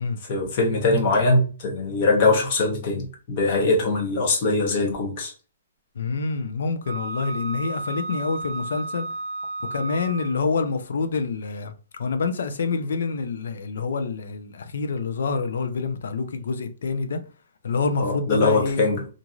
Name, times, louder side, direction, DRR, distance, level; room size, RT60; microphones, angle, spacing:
voice 1, 0.3-5.3 18.0-19.1, left 3 dB, 30° left, 0.8 m, -22 dB
voice 2, 6.0-9.1 9.7-11.7 12.0-17.2 17.6-18.8, left 4 dB, 65° left, 0.5 m, -27 dB
Wind instrument woodwind instrument, 6.8-10.4, right 2 dB, 40° right, 0.6 m, -33 dB
3.0 x 2.5 x 2.4 m
hypercardioid pair, 170°, 0 cm